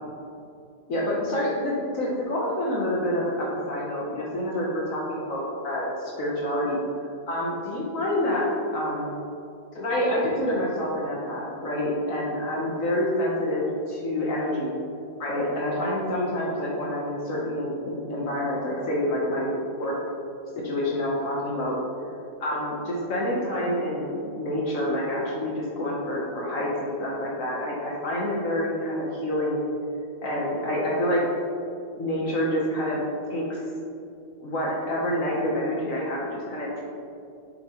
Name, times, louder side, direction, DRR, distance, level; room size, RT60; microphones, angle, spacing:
voice 1, 0.9-6.8 7.3-9.2 9.7-14.8 15.2-19.9 20.6-21.8 22.4-29.6 30.2-31.2 32.0-33.0 33.3-33.6 34.4-36.8, left 1 dB, 55° left, -4 dB, 1.2 m, -27 dB
6.9 x 5.1 x 2.9 m, 2.6 s
omnidirectional pair, 1.8 m